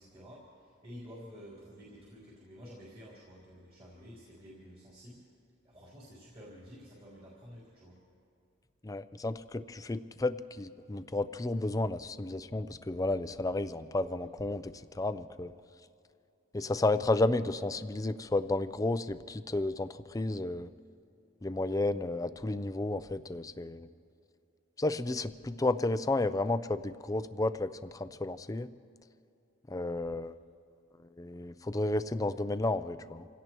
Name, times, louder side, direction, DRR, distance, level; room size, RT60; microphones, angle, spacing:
voice 1, 0.0-5.2 5.6-8.0, equal, 30° right, -6 dB, 3.4 m, -51 dB
voice 2, 8.8-15.5 16.5-20.7 21.4-23.9 24.8-28.7 29.7-30.4 31.0-33.3, left 2 dB, 15° left, 12 dB, 0.4 m, -32 dB
27.5 x 17.0 x 3.0 m, 2.6 s
head